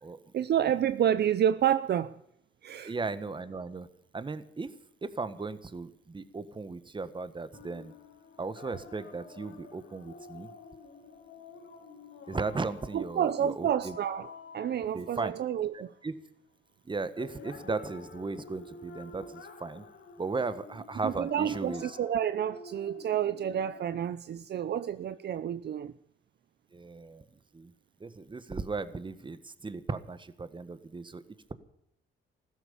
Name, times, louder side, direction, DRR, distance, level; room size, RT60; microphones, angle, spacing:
voice 1, 0.3-2.1 2.6-2.9 12.9-15.9 21.0-25.9, right 9 dB, 55° right, 13 dB, 0.7 m, -29 dB
voice 2, 2.8-3.9 4.1-4.7 5.0-7.9 8.4-10.5 12.3-14.0 14.9-15.3 15.7-16.1 16.8-19.8 20.2-22.0 26.7-27.2 27.5-27.7 28.0-31.2, right 3 dB, 25° right, 13 dB, 1.5 m, -36 dB
sound 1, 7.5-15.8 17.2-24.1, left 5 dB, 65° left, 2.7 m, -49 dB
15.5 x 13.0 x 7.0 m, 0.75 s
cardioid pair, 90°, 20 cm